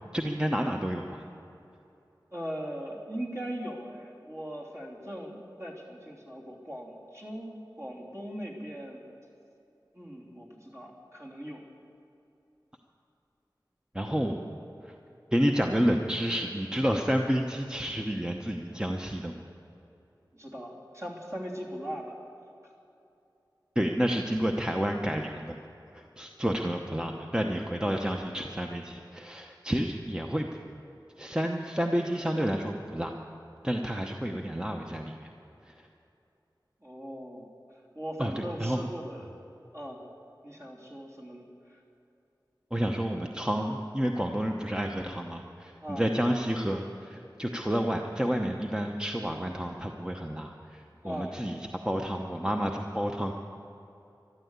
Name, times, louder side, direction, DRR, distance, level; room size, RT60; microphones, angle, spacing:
voice 1, 0.1-1.2 13.9-14.5 14.8-14.9 15.3-19.3 23.8-25.5 25.9-30.5 31.2-33.1 33.6-35.3 35.7-35.8 38.2-38.9 42.7-51.6 51.8-53.3, equal, 10° right, 2 dB, 0.9 m, -30 dB
voice 2, 2.3-9.0 9.9-11.6 20.3-22.2 22.6-22.7 36.8-37.5 37.9-39.3 39.7-40.0 40.4-41.8 45.8-46.1 51.0-51.4, equal, 35° right, -3 dB, 3.3 m, -40 dB
13.0 x 12.0 x 8.2 m, 2.8 s
wide cardioid pair, 45°, 8 cm